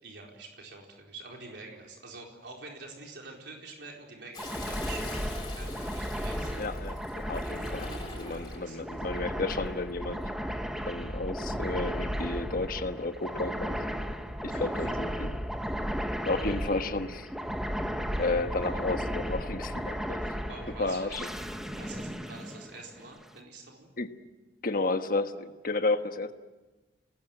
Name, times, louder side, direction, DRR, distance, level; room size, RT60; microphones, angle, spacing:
voice 1, 0.0-6.6 8.2-8.9 14.4-15.0 20.2-21.3 21.7-23.9, right 3 dB, 70° right, 0 dB, 4.4 m, -47 dB
Toilet flush, 4.3-8.6 10.0-10.5, left 3 dB, 25° left, 6.8 m, -44 dB
sound 1, 4.4-23.2, equal, 5° right, 1.2 m, -35 dB
voice 2, 6.6-13.9 14.4-15.4 16.2-17.3 18.2-20.2 20.8-21.3 24.0-24.1 24.6-26.3, left 3 dB, 50° left, 8 dB, 1.3 m, -32 dB
29.0 x 19.5 x 7.9 m, 1.2 s
head